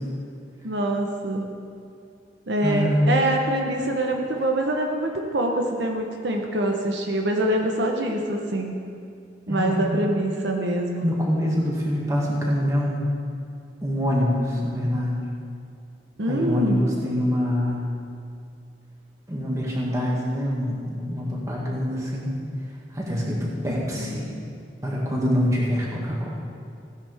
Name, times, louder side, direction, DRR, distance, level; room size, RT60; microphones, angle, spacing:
voice 1, 0.6-1.5 2.5-8.8 9.5-11.1 16.2-16.8 23.6-24.2, right 1 dB, 75° right, 2 dB, 1.0 m, -25 dB
voice 2, 2.6-3.0 9.5-9.8 11.0-13.0 13.8-15.2 16.3-17.8 19.3-22.3 22.9-24.3 24.8-26.3, equal, 20° right, -4 dB, 2.0 m, -25 dB
16.0 x 10.0 x 3.5 m, 2.4 s
head